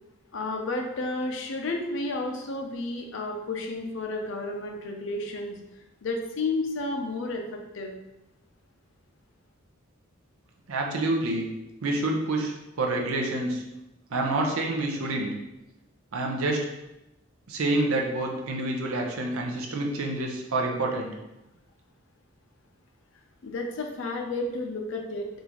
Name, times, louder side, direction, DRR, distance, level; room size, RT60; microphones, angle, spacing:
voice 1, 0.3-5.6 6.0-8.0 23.4-25.3, left 2 dB, 60° left, 3 dB, 0.5 m, -31 dB
voice 2, 10.7-11.5 11.8-13.6 14.1-15.3 16.1-16.7 17.5-21.1, right 2 dB, 80° right, 1 dB, 0.6 m, -27 dB
3.7 x 2.5 x 2.9 m, 0.93 s
head